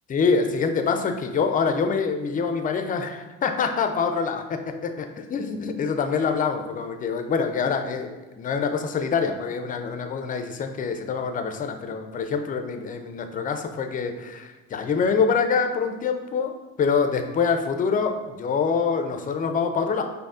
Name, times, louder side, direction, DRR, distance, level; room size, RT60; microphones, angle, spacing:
voice 1, 0.1-20.0, left 5 dB, 25° left, 6 dB, 0.4 m, -25 dB
5.3 x 2.1 x 2.4 m, 1.1 s
supercardioid pair, 75°, 35 cm